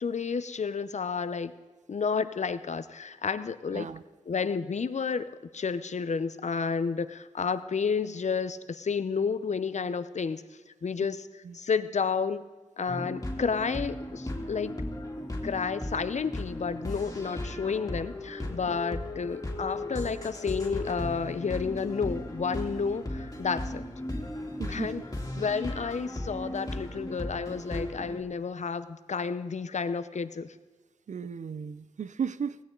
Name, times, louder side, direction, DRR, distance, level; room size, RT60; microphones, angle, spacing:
voice 1, 0.0-1.5 1.9-3.9 4.3-10.4 10.8-12.4 12.8-14.8 15.4-23.8 24.7-25.0 25.4-30.5, left 5 dB, 70° left, 13 dB, 0.7 m, -31 dB
voice 2, 3.7-4.0 11.4-11.6 24.6-25.1 31.1-32.6, right 6 dB, 75° right, 16 dB, 0.5 m, -35 dB
sound 1, 12.9-28.2, left 1 dB, 25° left, 2.8 m, -36 dB
18.5 x 16.5 x 3.9 m, 1.3 s
cardioid pair, 55°, 12 cm